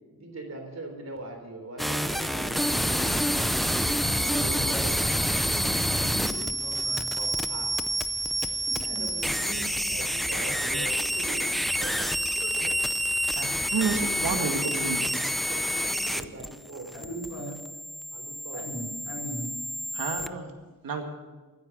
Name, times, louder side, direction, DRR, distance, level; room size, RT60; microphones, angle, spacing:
voice 1, 0.1-3.1 3.5-5.1 7.2-7.8 8.8-11.5 11.8-12.8 15.5-17.4 18.1-18.8, right 2 dB, 50° right, 3 dB, 3.5 m, -41 dB
sound 1, 1.8-20.3, equal, ahead, 0.5 m, -28 dB
voice 2, 5.5-7.1 8.9-9.0 16.9-17.6 18.5-19.5, equal, 50° left, -1 dB, 5.5 m, -38 dB
sound 2, 6.7-14.7, right 1 dB, 20° right, 3.3 m, -48 dB
voice 3, 13.3-15.1 19.9-20.5 20.8-21.0, right 5 dB, 80° right, 3 dB, 2.2 m, -30 dB
15.0 x 9.5 x 8.0 m, 1.2 s
wide cardioid pair, 145°, 34 cm